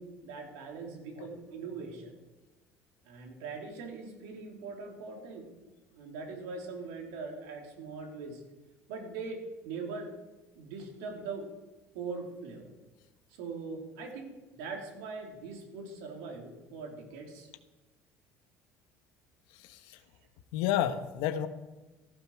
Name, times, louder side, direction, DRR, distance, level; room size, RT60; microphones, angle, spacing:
voice 1, 0.0-2.1 3.0-5.5 5.9-8.4 8.9-10.1 10.5-11.5 11.9-12.7 13.3-17.5, right 4 dB, 80° right, 1 dB, 3.2 m, -41 dB
voice 2, 19.5-20.0 20.5-21.5, left 11 dB, 80° left, 10 dB, 1.1 m, -31 dB
14.5 x 12.5 x 4.7 m, 1.1 s
hypercardioid pair, 75°, 7 cm